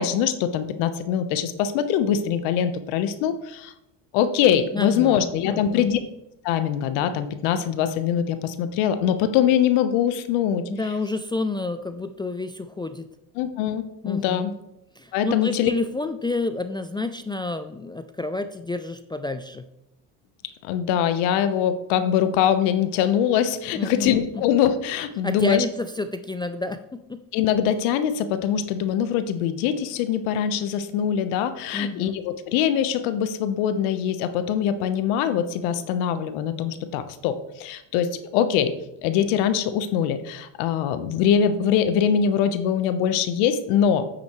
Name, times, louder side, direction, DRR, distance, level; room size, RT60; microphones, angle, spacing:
voice 1, 0.0-3.7 4.1-6.0 6.4-10.6 13.4-14.5 15.1-15.7 20.6-25.6 27.3-38.7 39.0-44.0, left 9 dB, 70° left, 11 dB, 1.1 m, -23 dB
voice 2, 4.7-5.9 10.7-13.1 14.0-14.5 15.0-19.7 23.7-24.4 25.2-27.2 31.7-32.2, left 3 dB, 10° left, 9 dB, 0.3 m, -30 dB
8.8 x 8.4 x 3.1 m, 0.85 s
hypercardioid pair, 75°, 49 cm